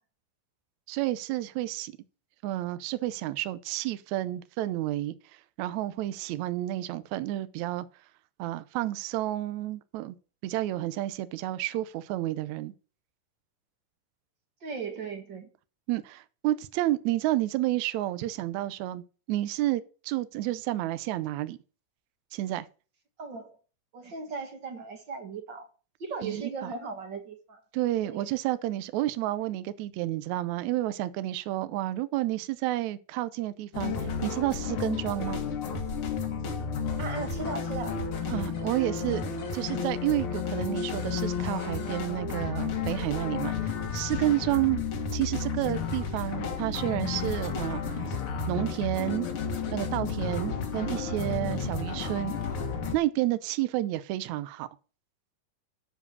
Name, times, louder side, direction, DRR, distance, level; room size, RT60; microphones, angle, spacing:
voice 1, 0.9-1.9 2.4-5.1 5.6-7.9 8.4-10.2 10.4-12.7 15.9-21.6 22.3-22.7 26.2-26.7 27.7-35.4 38.3-44.8 45.1-48.1 48.5-49.3 49.7-52.3 52.9-54.7, right 15 dB, 75° right, 1.8 m, -30 dB
voice 2, 14.6-15.5 23.2-23.6 23.9-25.7 26.0-27.6 28.0-28.3 37.0-38.0, right 4 dB, 45° right, 1.6 m, -37 dB
sound 1, 33.7-53.0, left 5 dB, 50° left, 1.9 m, -32 dB
12.5 x 4.9 x 6.9 m
omnidirectional pair, 3.9 m